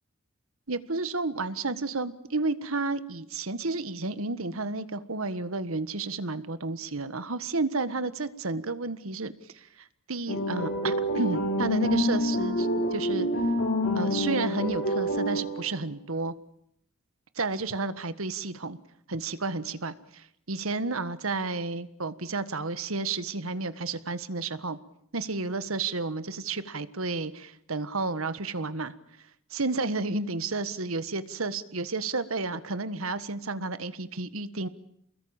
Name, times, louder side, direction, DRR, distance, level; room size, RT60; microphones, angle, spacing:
voice 1, 0.7-13.3 13.9-16.3 17.3-18.8 19.1-24.8 25.1-28.9 29.5-34.7, right 3 dB, 75° right, 13 dB, 1.6 m, -31 dB
sound 1, 10.3-15.7, equal, 65° left, 6.4 m, -27 dB
29.5 x 21.0 x 8.9 m, 0.74 s
head